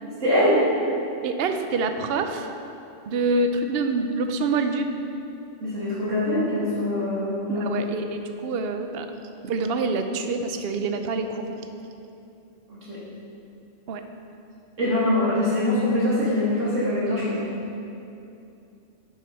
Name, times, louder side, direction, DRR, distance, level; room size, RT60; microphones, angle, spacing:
voice 1, 0.0-0.6 5.6-7.7 12.7-13.0 14.8-17.6, left 1 dB, 80° right, -9 dB, 2.7 m, -23 dB
voice 2, 1.2-2.5 3.1-4.9 7.5-9.1 9.4-11.7 13.9-14.0, right 3 dB, 60° right, 6 dB, 0.8 m, -26 dB
7.2 x 6.5 x 5.6 m, 2.7 s
omnidirectional pair, 1.3 m